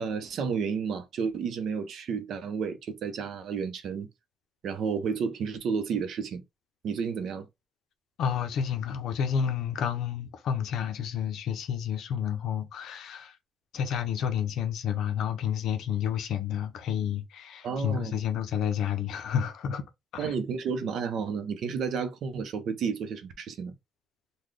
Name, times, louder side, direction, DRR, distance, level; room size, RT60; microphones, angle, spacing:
voice 1, 0.0-4.1 4.6-6.4 6.8-7.5 17.6-18.2 20.2-23.7, right 6 dB, 55° right, 0.6 m, -31 dB
voice 2, 8.2-13.4 13.7-19.8 20.1-20.3, left 8 dB, 65° left, 0.7 m, -30 dB
3.9 x 2.2 x 3.2 m
cardioid pair, 170°, 0 cm